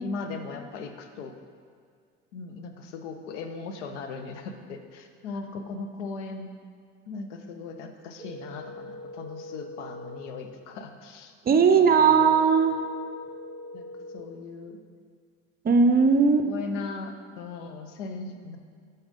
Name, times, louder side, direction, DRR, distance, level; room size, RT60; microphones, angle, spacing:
voice 1, 0.0-1.3 2.3-6.5 7.1-12.3 13.7-13.9 14.1-14.8 16.4-18.6, left 4 dB, 80° left, 6 dB, 0.7 m, -38 dB
sound 1, 8.2-10.2 12.2-14.2, left 1 dB, 5° left, 0.9 m, -42 dB
voice 2, 11.4-12.7 15.6-16.5, right 5 dB, 25° right, 8 dB, 0.6 m, -18 dB
7.0 x 4.3 x 5.2 m, 2.2 s
hypercardioid pair, 70°, 35 cm